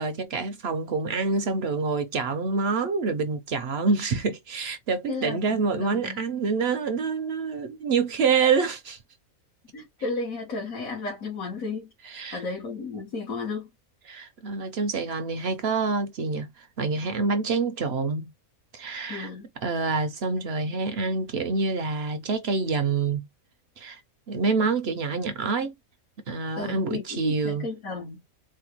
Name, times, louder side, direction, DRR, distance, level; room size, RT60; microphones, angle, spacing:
voice 1, 0.0-9.0 12.0-12.4 14.1-18.3 18.7-19.3 19.6-23.3 23.8-24.0 24.3-25.7 26.3-27.7, right 4 dB, 60° right, 0.7 m, -27 dB
voice 2, 5.1-6.2 9.7-11.9 12.3-13.7 19.1-19.5 26.5-28.2, left 3 dB, 75° left, 1.7 m, -33 dB
4.3 x 2.1 x 2.8 m
omnidirectional pair, 1.5 m